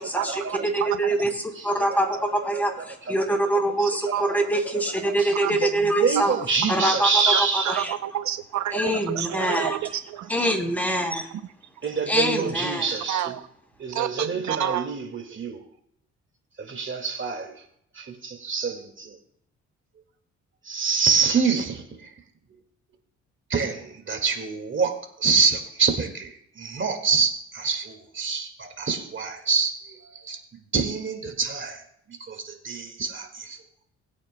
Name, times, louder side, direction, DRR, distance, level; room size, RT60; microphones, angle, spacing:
voice 1, 0.0-1.3 1.8-1.9 3.8-4.3 5.3-5.5 6.8-10.3 11.3-11.4 13.1-13.4 13.9-14.9, right 11 dB, 70° right, 10 dB, 0.6 m, -30 dB
voice 2, 0.7-1.3 1.6-2.1 2.3-6.3 6.7-7.1 7.5-7.9 8.7-9.8 10.3-11.3 12.1-12.8, right 1 dB, 5° left, 2 dB, 2.8 m, -24 dB
voice 3, 1.5-2.1 2.5-3.3 4.0-4.4 5.0-7.9 11.8-13.3 13.8-15.6 16.6-17.7 17.9-19.2 20.6-22.1 23.5-33.6, right 5 dB, 40° right, 5 dB, 1.9 m, -27 dB
20.5 x 8.7 x 2.2 m, 0.70 s
cardioid pair, 90°, 30 cm